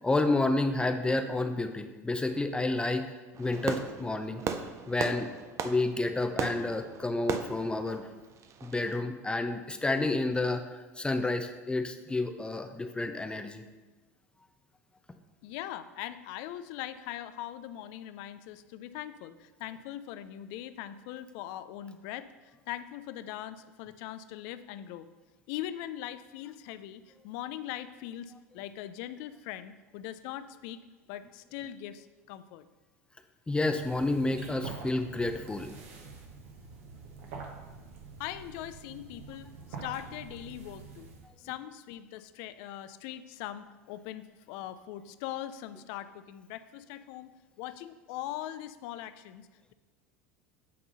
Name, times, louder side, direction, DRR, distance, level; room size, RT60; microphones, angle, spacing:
voice 1, 0.0-4.4 4.9-5.3 5.6-8.1 8.6-13.6 33.5-35.7, left 2 dB, 10° left, 7 dB, 0.6 m, -30 dB
Fireworks, 3.3-9.0, right 6 dB, 35° right, 0.6 m, -37 dB
voice 2, 15.4-22.3 22.7-25.1 25.5-30.8 31.1-32.7 38.2-39.5 39.8-41.1 41.4-49.7, left 12 dB, 60° left, 13 dB, 0.5 m, -41 dB
sound 1, 33.7-41.3, right 4 dB, 70° right, 1.3 m, -46 dB
8.6 x 3.7 x 5.4 m, 1.2 s
hypercardioid pair, 80°, 8 cm